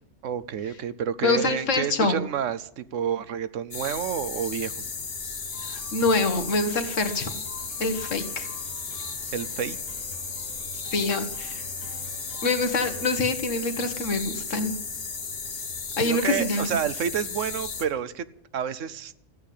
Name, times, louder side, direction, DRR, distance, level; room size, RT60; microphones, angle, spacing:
voice 1, 0.2-4.7 9.3-9.8 16.0-18.2 18.5-19.1, right 8 dB, 85° right, 15 dB, 1.1 m, -29 dB
voice 2, 1.2-2.2 5.6-7.4 7.8-8.5 10.9-11.6 12.4-14.7 16.0-16.7, left 3 dB, 85° left, 9 dB, 1.8 m, -25 dB
sound 1, 3.7-17.8, left 4 dB, 55° left, 1.7 m, -35 dB
sound 2, 5.5-13.3, left 2 dB, 20° right, 4.9 m, -49 dB
14.5 x 8.5 x 10.0 m, 0.77 s
omnidirectional pair, 1.3 m